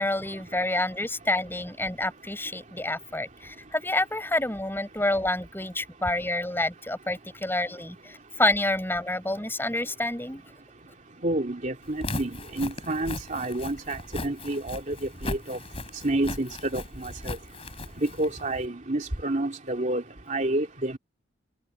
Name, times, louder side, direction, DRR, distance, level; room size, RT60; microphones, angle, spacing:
voice 1, 0.0-10.4, left 2 dB, 10° left, 7.1 m, -28 dB
voice 2, 11.2-12.3 12.6-14.9 15.2-15.6 16.0-17.4 18.0-20.0 20.3-21.0, right 1 dB, 45° right, 2.9 m, -29 dB
Walk footsteps, 11.9-18.7, left 2 dB, 35° left, 3.7 m, -37 dB
open air
head